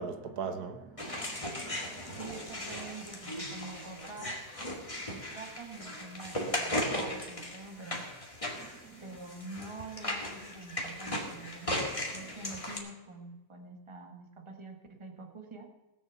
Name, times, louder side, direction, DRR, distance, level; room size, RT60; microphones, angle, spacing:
voice 1, 0.0-2.2 4.9-5.1 8.6-9.0, right 5 dB, 85° right, 1.6 m, -42 dB
sound 1, 1.0-12.8, left 1 dB, 20° left, 2.1 m, -37 dB
voice 2, 2.1-4.4 5.1-8.0 9.0-11.9 12.1-15.7, right 3 dB, 20° right, 1.4 m, -46 dB
18.0 x 7.0 x 7.1 m
omnidirectional pair, 1.6 m